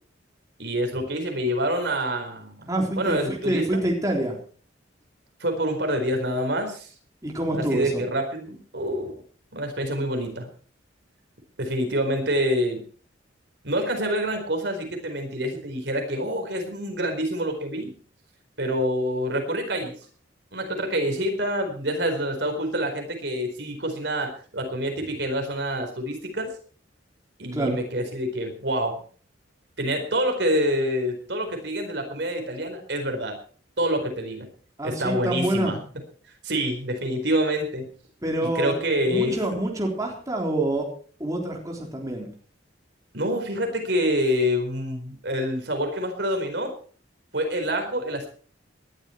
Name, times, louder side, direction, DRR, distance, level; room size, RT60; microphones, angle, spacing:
voice 1, 0.6-3.8 5.4-6.9 7.5-9.1 9.5-10.5 11.6-12.8 13.6-17.9 18.6-19.9 20.5-26.5 27.4-29.0 29.8-33.4 33.8-34.5 34.8-35.8 36.4-37.8 38.4-39.4 43.1-46.7 47.3-48.3, equal, 60° right, 4 dB, 4.5 m, -27 dB
voice 2, 2.7-4.4 7.2-8.0 27.5-27.8 34.8-35.8 38.2-38.8 39.1-40.9 41.2-42.3, right 1 dB, 20° right, -1 dB, 3.7 m, -26 dB
19.5 x 12.0 x 4.6 m, 0.43 s
head